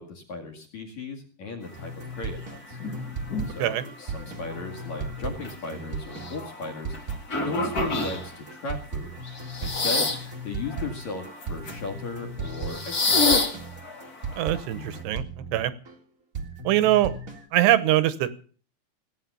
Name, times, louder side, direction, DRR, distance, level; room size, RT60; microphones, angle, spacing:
voice 1, 0.0-2.8 3.5-6.9 7.4-9.1 9.6-10.1 10.4-13.4 16.7-16.8, left 3 dB, 45° left, 2 dB, 2.9 m, -36 dB
sound 1, 1.7-16.0 16.3-17.5, right 3 dB, 40° right, 1.1 m, -37 dB
sound 2, 2.2-2.3 2.8-3.6 4.0-8.6 9.1-10.3 10.7-11.8 12.4-15.0, left 3 dB, 70° left, 0.8 m, -29 dB
voice 2, 14.4-15.2 15.5-15.7 16.6-17.1 17.5-18.3, right 13 dB, 75° right, 14 dB, 2.8 m, -22 dB
18.0 x 9.4 x 6.9 m, 0.42 s
omnidirectional pair, 5.4 m